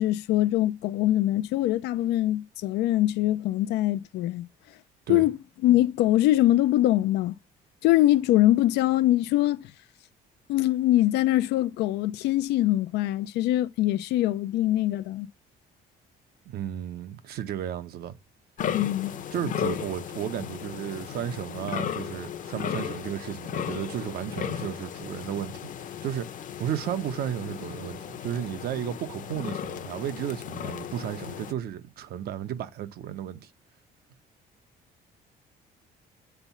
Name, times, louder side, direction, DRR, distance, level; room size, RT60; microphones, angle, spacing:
voice 1, 0.0-4.5 5.1-7.4 7.8-9.7 10.5-15.3 18.7-19.1, left 14 dB, 85° left, 0.6 m, -23 dB
voice 2, 16.5-18.1 19.3-33.5, right 10 dB, 70° right, 1.0 m, -34 dB
Roaring deer in mating season, 18.6-31.5, left 9 dB, 50° left, 0.8 m, -35 dB
8.1 x 3.5 x 5.7 m
cardioid pair, 110°, 17 cm